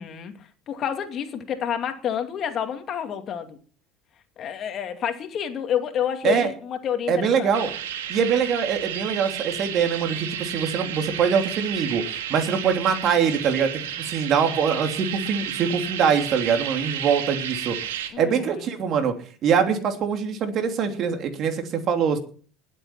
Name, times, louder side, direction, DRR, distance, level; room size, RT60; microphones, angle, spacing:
voice 1, 0.0-3.6 4.4-7.7 18.1-18.7, left 9 dB, 45° left, 6 dB, 2.6 m, -29 dB
voice 2, 7.1-7.7 8.1-19.1 19.4-22.2, right 7 dB, 50° right, 6 dB, 3.0 m, -23 dB
sound 1, 7.5-18.1, right 10 dB, 85° right, 1.8 m, -32 dB
20.0 x 8.0 x 5.9 m, 0.43 s
hypercardioid pair, 80°, 0 cm